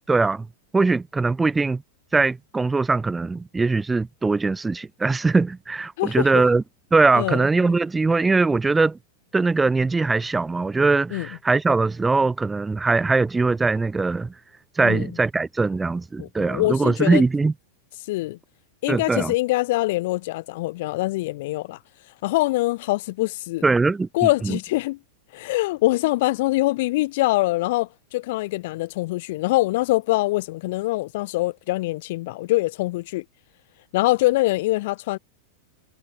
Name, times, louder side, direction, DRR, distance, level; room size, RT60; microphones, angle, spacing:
voice 1, 0.1-0.5 0.7-1.8 2.1-6.6 6.9-9.0 9.3-14.3 14.8-17.5 18.9-19.3 23.6-24.1 24.4-24.6, right 3 dB, 10° right, 3.8 m, -21 dB
voice 2, 16.2-17.2 18.1-18.4 18.8-21.8 22.2-23.6 24.1-25.0 25.3-33.2 33.9-35.2, left 19 dB, 50° left, 3.2 m, -24 dB
figure-of-eight pair, 90°, 0 cm